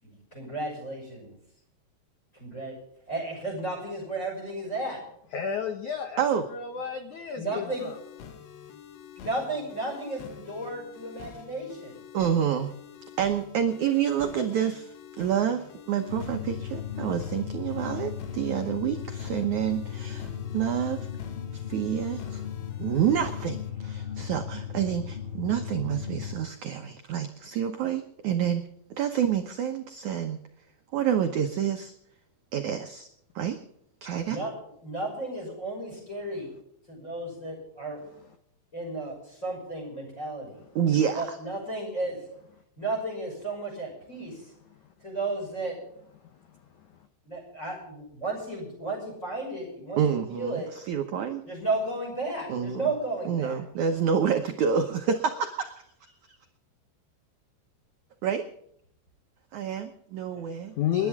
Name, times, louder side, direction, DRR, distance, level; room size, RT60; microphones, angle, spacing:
voice 1, 0.0-1.4 2.3-2.8 3.1-5.0 7.4-7.9 9.2-12.0 34.3-34.5 34.8-36.5 36.9-38.0 38.7-40.6 41.1-42.3 42.8-44.5 45.0-45.8 47.2-50.7 51.4-53.6 60.3-60.4, right 2 dB, 15° left, 2 dB, 6.2 m, -33 dB
voice 2, 5.3-6.2 6.5-8.0 46.2-47.0 60.7-61.1, left 8 dB, 70° left, 7 dB, 1.8 m, -32 dB
sound 1, 7.7-23.7, left 8 dB, 90° left, 4.0 m, -47 dB
voice 3, 12.1-12.7 13.2-21.1 21.5-22.5 22.8-28.6 29.0-30.4 30.9-31.9 32.5-33.1 33.4-33.6 34.0-34.4 40.8-41.4 50.0-51.4 52.5-52.9 53.3-55.7 56.3-56.4 58.2-58.5 59.5-60.7 61.0-61.1, right 8 dB, 85° right, 5 dB, 1.7 m, -28 dB
sound 2, 16.1-26.3, left 9 dB, 50° left, 0.6 m, -36 dB
28.5 x 11.0 x 3.6 m, 0.72 s
omnidirectional pair, 5.0 m